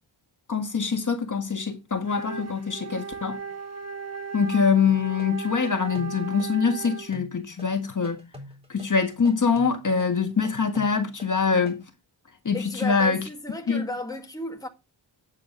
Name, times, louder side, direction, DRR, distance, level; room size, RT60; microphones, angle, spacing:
voice 1, 0.5-3.4 4.3-8.2 8.7-11.8 12.4-13.3 13.7-13.9, left 5 dB, 40° left, 1.7 m, -24 dB
Wind instrument woodwind instrument, 2.0-7.2, right 5 dB, 35° right, 1.7 m, -37 dB
sound 1, 5.2-11.8, left 1 dB, 10° right, 3.8 m, -45 dB
voice 2, 12.5-14.7, left 2 dB, 5° left, 1.8 m, -34 dB
9.2 x 7.6 x 3.9 m
wide cardioid pair, 115°, 47 cm